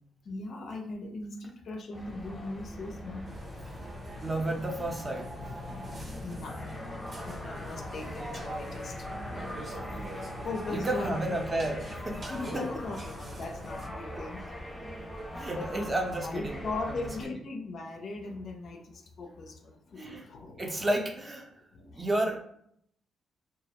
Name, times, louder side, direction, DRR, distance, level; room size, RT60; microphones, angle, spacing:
voice 1, 0.2-3.3 5.4-6.9 7.2-9.0 10.4-11.2 12.3-14.4 15.3-15.9 16.2-21.0 21.7-22.1, left 2 dB, 60° left, 3 dB, 0.4 m, -39 dB
sound 1, 1.9-17.3, equal, 20° left, 0.7 m, -42 dB
Burping eructation, 3.3-13.8, equal, 70° right, 1.0 m, -43 dB
voice 2, 4.2-5.3 10.7-12.6 14.1-14.2 15.3-16.6 20.0-20.2 20.6-21.5 21.9-22.4, right 1 dB, 25° right, 2 dB, 0.6 m, -31 dB
2.2 x 2.0 x 2.8 m, 0.66 s
cardioid pair, 70°, 0 cm